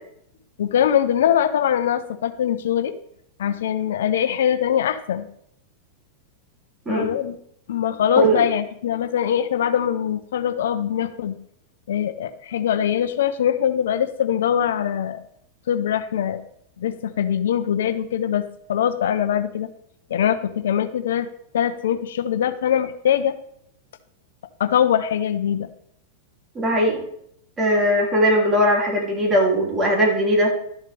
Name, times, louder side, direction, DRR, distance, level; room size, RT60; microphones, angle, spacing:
voice 1, 0.6-2.9 3.4-5.3 6.9-7.4 7.7-11.4 11.9-15.2 15.7-16.4 16.8-19.7 20.1-21.3 21.5-23.4 24.6-25.7, left 9 dB, 80° left, 10 dB, 0.7 m, -22 dB
voice 2, 26.5-27.0 27.6-30.5, equal, 20° right, -1 dB, 3.0 m, -19 dB
12.5 x 6.6 x 3.4 m, 0.70 s
hypercardioid pair, 125°, 0 cm